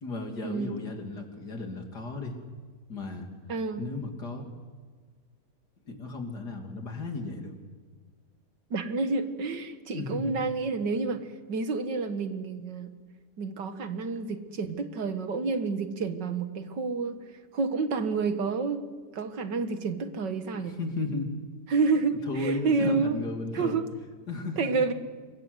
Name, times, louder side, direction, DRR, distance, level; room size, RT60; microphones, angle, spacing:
voice 1, 0.0-2.4 2.9-3.3 3.8-4.5 5.9-7.6 9.9-10.3 20.5-21.3 22.3-23.9 24.3-24.9, left 2 dB, 70° left, 4 dB, 3.7 m, -35 dB
voice 2, 3.5-3.8 8.7-12.9 13.4-18.9 19.1-20.8 21.7-23.2 23.5-23.8 24.6-24.9, right 4 dB, 90° right, 9 dB, 2.3 m, -29 dB
27.5 x 22.5 x 8.1 m, 1.5 s
omnidirectional pair, 1.8 m